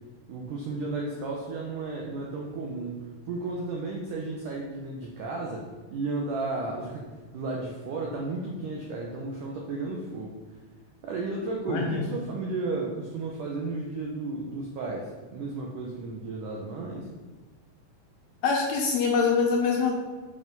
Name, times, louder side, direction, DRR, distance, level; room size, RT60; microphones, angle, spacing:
voice 1, 0.3-7.1 7.3-10.4 11.0-17.1, right 3 dB, 80° right, -1 dB, 1.8 m, -33 dB
voice 2, 11.7-12.1 18.4-19.9, left 5 dB, 75° left, 0 dB, 2.3 m, -24 dB
7.7 x 5.9 x 5.4 m, 1.3 s
omnidirectional pair, 5.1 m